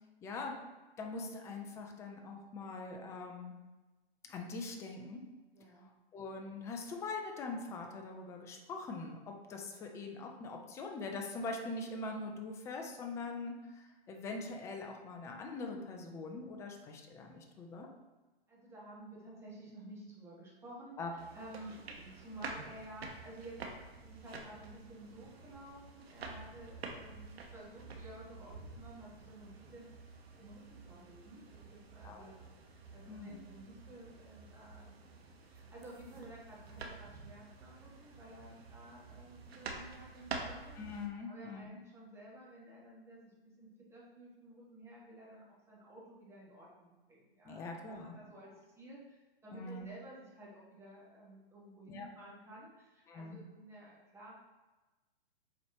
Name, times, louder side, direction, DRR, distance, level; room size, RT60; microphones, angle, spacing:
voice 1, 0.2-0.6 1.0-3.6 4.3-5.2 6.1-17.9 21.0-21.1 32.0-32.3 33.1-33.4 40.8-41.7 47.4-48.2 49.5-49.8 51.9-52.1 53.1-53.4, left 3 dB, 10° left, 3 dB, 0.4 m, -43 dB
voice 2, 5.5-5.9 18.5-23.6 24.0-29.9 30.4-32.4 32.6-34.9 35.5-40.8 41.3-54.3, right 1 dB, 10° right, -5 dB, 1.7 m, -53 dB
sound 1, 21.2-41.1, right 4 dB, 80° right, 1.1 m, -49 dB
7.4 x 4.5 x 2.9 m, 1.1 s
hypercardioid pair, 135°, 31 cm